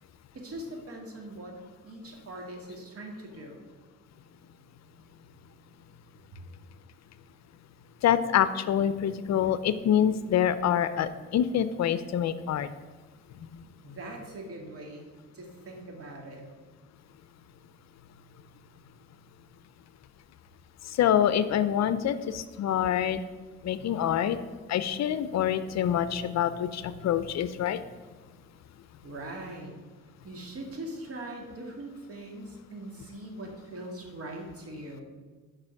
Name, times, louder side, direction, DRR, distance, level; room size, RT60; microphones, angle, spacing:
voice 1, 0.3-1.6 1.8-3.6 13.8-15.0 15.3-16.5 29.0-29.7 30.2-35.0, right 1 dB, 50° right, 1 dB, 2.2 m, -41 dB
voice 2, 8.0-12.7 20.8-23.2 23.6-24.4 24.7-27.8, left 9 dB, 60° left, 13 dB, 0.6 m, -26 dB
6.7 x 5.3 x 7.1 m, 1.4 s
cardioid pair, 90°, 30 cm